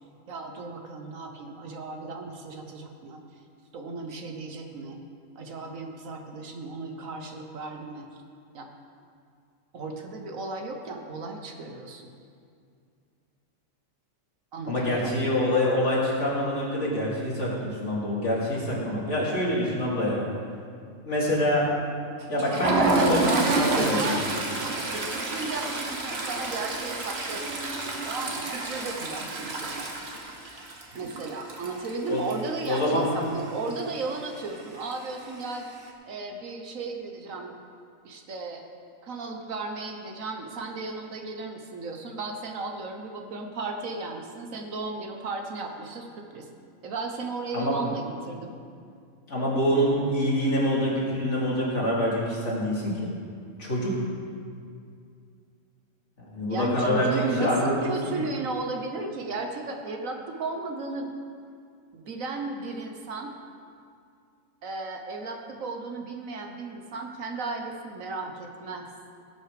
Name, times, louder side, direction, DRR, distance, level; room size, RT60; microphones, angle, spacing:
voice 1, 0.3-3.2 3.7-5.0 5.3-8.1 8.5-8.7 9.7-12.1 14.5-15.3 22.7-24.5 24.8-27.5 28.0-29.7 30.9-35.7 36.0-37.6 38.0-38.6 39.0-46.5 46.8-48.6 56.5-61.2 61.9-63.3 64.6-68.9, right 3 dB, 75° right, 3 dB, 1.5 m, -35 dB
voice 2, 14.7-20.2 21.0-21.7 22.3-23.2 23.5-24.0 32.1-32.3 32.6-33.1 47.5-47.8 49.3-52.9 53.6-53.9 56.2-58.2, left 1 dB, 60° left, -5 dB, 3.0 m, -26 dB
Toilet flush, 22.2-33.0 33.3-33.5 33.8-34.0 34.9-35.4, right 2 dB, 50° right, 1.6 m, -29 dB
17.5 x 8.1 x 5.0 m, 2.3 s
omnidirectional pair, 1.4 m